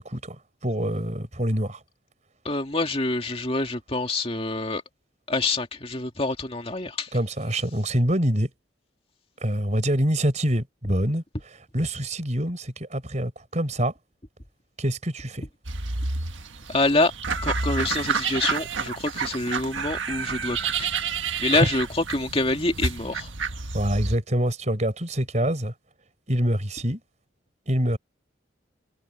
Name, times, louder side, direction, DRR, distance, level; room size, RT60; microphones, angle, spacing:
voice 1, 0.0-1.8 7.1-8.5 9.4-11.2 11.7-13.9 14.8-15.5 21.5-21.6 23.7-25.7 26.3-27.0 27.7-28.0, right 1 dB, 35° right, 4.5 m, -25 dB
voice 2, 2.4-4.8 5.3-7.2 16.7-17.1 17.4-23.3, left 2 dB, 30° left, 2.2 m, -26 dB
sound 1, 15.6-24.2, right 5 dB, 80° right, 1.6 m, -29 dB
head